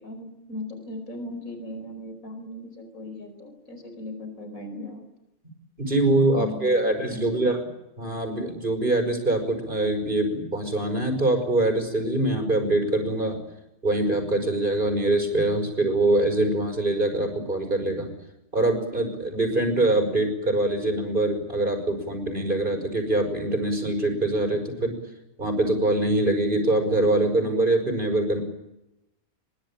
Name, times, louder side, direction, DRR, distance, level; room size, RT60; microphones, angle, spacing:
voice 1, 0.0-5.0 6.3-7.4, left 1 dB, 70° left, 7 dB, 5.2 m, -38 dB
voice 2, 5.8-7.6 8.0-13.4 13.8-18.1 18.5-25.0 25.4-28.4, right 2 dB, 35° right, 5 dB, 5.8 m, -24 dB
23.0 x 22.5 x 9.0 m, 0.91 s
omnidirectional pair, 1.5 m